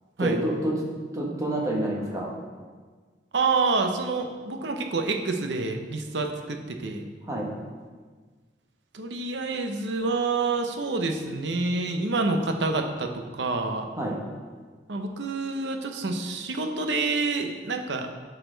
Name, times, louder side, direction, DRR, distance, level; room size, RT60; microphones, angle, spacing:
voice 1, 0.2-0.7 1.1-2.3 7.3-7.5 14.0-14.2, right 1 dB, 20° right, -3 dB, 1.4 m, -28 dB
voice 2, 3.3-7.0 8.9-13.9 14.9-18.1, right 3 dB, 75° right, 4 dB, 0.8 m, -27 dB
12.5 x 4.2 x 3.9 m, 1.5 s
head